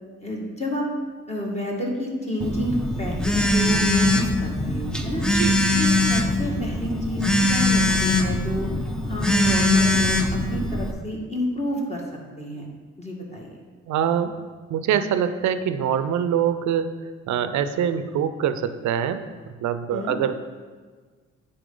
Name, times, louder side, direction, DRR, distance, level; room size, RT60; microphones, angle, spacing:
voice 1, 0.2-0.8 1.3-5.2 5.8-8.7 9.0-12.0 12.4-12.7 13.0-13.5 19.9-20.2, left 1 dB, 20° left, -2 dB, 1.8 m, -29 dB
Telephone, 2.4-10.9, left 2 dB, 5° left, 0.6 m, -22 dB
voice 2, 13.9-14.4 14.7-20.3, right 8 dB, 70° right, 10 dB, 0.6 m, -24 dB
10.0 x 4.3 x 3.8 m, 1.5 s
cardioid pair, 90°, 30 cm